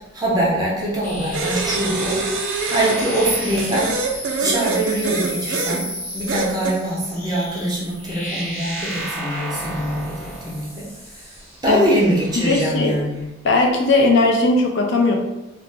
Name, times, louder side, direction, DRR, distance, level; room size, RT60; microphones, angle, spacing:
voice 1, 0.1-3.9 4.4-5.8 6.1-10.1 10.4-10.8 11.6-13.3, right 1 dB, 20° right, -5 dB, 0.6 m, -23 dB
sound 1, 1.0-12.7, equal, 5° left, 0.9 m, -32 dB
sound 2, 1.3-3.0 3.6-5.8 6.3-6.8, right 4 dB, 70° right, 0.3 m, -25 dB
voice 2, 12.3-13.0 13.4-15.1, left 2 dB, 60° left, 2 dB, 0.4 m, -17 dB
2.4 x 2.0 x 3.3 m, 0.98 s
head